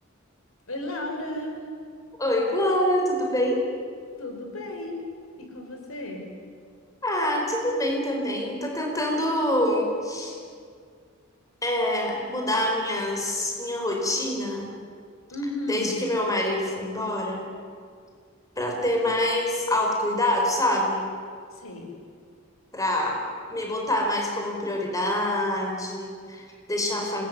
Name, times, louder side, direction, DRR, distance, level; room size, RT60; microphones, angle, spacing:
voice 1, 0.7-1.6 4.2-5.0 5.4-6.3 15.3-15.9 21.5-21.9, left 1 dB, 85° left, 3 dB, 5.6 m, -34 dB
voice 2, 2.2-3.6 7.0-10.4 11.6-14.7 15.7-17.4 18.6-21.0 22.7-23.2 23.5-27.3, left 1 dB, 15° left, 0 dB, 5.0 m, -25 dB
26.0 x 21.0 x 9.7 m, 2.1 s
head